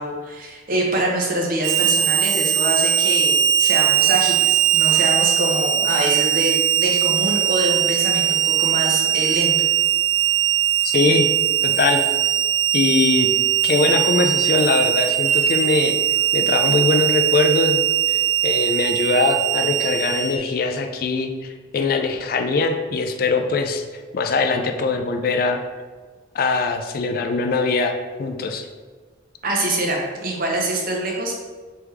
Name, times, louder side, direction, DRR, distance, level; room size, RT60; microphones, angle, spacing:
voice 1, 0.0-9.5 29.4-31.3, right 1 dB, 45° right, -1 dB, 0.7 m, -25 dB
Harmonica, 1.6-20.4, right 10 dB, 75° right, 0.3 m, -20 dB
voice 2, 10.8-11.3 11.6-12.0 12.7-13.3 13.6-16.0 16.3-17.8 18.1-23.8 24.1-25.6 26.3-28.7, left 3 dB, 50° left, 5 dB, 0.3 m, -21 dB
3.4 x 3.3 x 3.1 m, 1.4 s
head